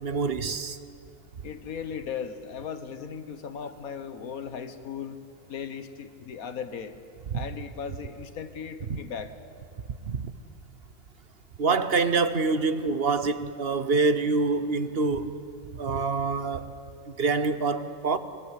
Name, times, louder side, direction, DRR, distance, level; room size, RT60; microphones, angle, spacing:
voice 1, 0.0-0.8 7.3-7.4 10.0-10.3 11.6-15.3 15.7-16.8 17.2-18.2, right 4 dB, 50° right, 1.1 m, -26 dB
voice 2, 1.4-5.2 5.5-6.9 7.3-9.3, left 7 dB, 85° left, 1.7 m, -37 dB
25.0 x 22.5 x 8.2 m
omnidirectional pair, 1.5 m